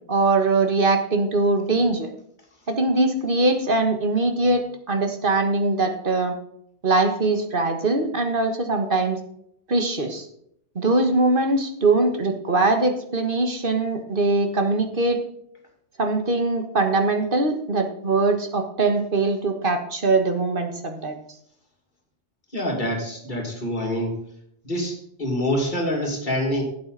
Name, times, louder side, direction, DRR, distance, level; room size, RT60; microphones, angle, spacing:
voice 1, 0.1-2.1 2.7-6.3 6.8-9.2 9.7-10.3 10.8-15.2 16.0-21.2, right 3 dB, 50° right, 5 dB, 1.6 m, -22 dB
voice 2, 22.5-24.2 24.6-26.6, left 1 dB, 45° left, 0 dB, 2.8 m, -26 dB
11.5 x 8.7 x 4.1 m, 0.72 s
omnidirectional pair, 1.2 m